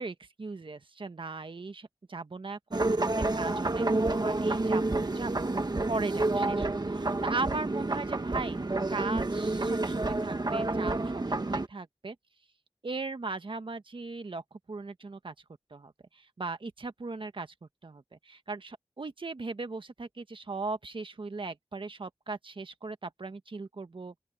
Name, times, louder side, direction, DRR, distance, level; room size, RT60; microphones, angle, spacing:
voice 1, 0.0-3.1 3.3-3.9 4.2-5.3 5.9-8.6 8.9-12.1 12.8-14.4 14.7-15.3 15.7-17.5 17.8-24.2, right 3 dB, 75° right, 1.4 m, -38 dB
sound 1, 2.7-11.7, right 2 dB, 55° right, 1.5 m, -29 dB
open air
wide cardioid pair, 45°, 9 cm